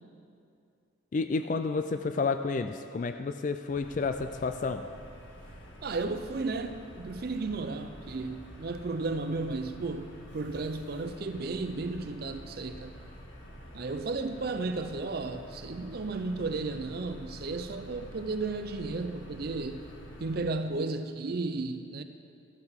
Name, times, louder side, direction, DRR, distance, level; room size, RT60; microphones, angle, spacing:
voice 1, 1.1-4.8, left 4 dB, 40° left, 8 dB, 0.3 m, -30 dB
sound 1, 3.7-20.4, equal, 80° left, 1.7 m, -48 dB
voice 2, 5.8-10.1 10.3-12.9 13.7-19.8 20.2-22.0, right 3 dB, 50° right, 8 dB, 0.5 m, -34 dB
14.5 x 12.5 x 3.6 m, 2.5 s
head